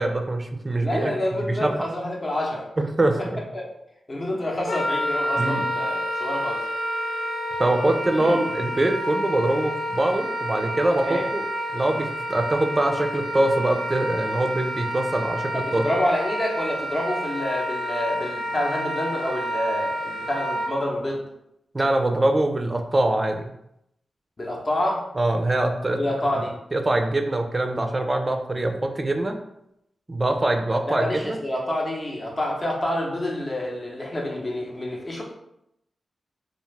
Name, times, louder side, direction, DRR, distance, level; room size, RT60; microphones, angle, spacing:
voice 1, 0.0-1.8 2.8-3.4 5.4-5.7 7.6-11.4 11.7-15.8 21.7-23.5 25.2-26.0 26.7-29.4 30.1-31.4, right 1 dB, 30° right, 5 dB, 0.4 m, -23 dB
voice 2, 0.8-2.6 3.5-3.7 4.1-6.6 8.2-8.4 11.0-11.2 15.5-21.2 24.4-25.0 26.0-26.5 30.9-35.2, left 1 dB, 40° left, -2 dB, 0.8 m, -28 dB
Wind instrument woodwind instrument, 4.6-20.7, equal, 80° left, 1.0 m, -29 dB
2.4 x 2.3 x 3.2 m, 0.81 s
cardioid pair, 60°, 0 cm